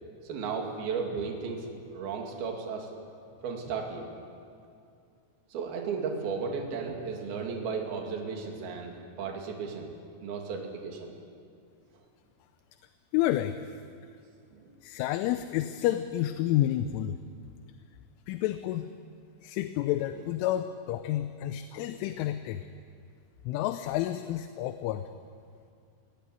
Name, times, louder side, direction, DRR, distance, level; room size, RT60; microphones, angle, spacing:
voice 1, 0.3-1.7 1.9-2.9 3.4-4.1 5.5-9.9 10.2-11.1 14.5-14.7, right 5 dB, 55° right, 1 dB, 4.0 m, -34 dB
voice 2, 13.1-13.6 14.8-17.2 18.3-18.9 19.4-22.7 23.5-25.0, left 13 dB, 80° left, 10 dB, 3.0 m, -29 dB
22.5 x 16.5 x 9.4 m, 2.4 s
omnidirectional pair, 5.9 m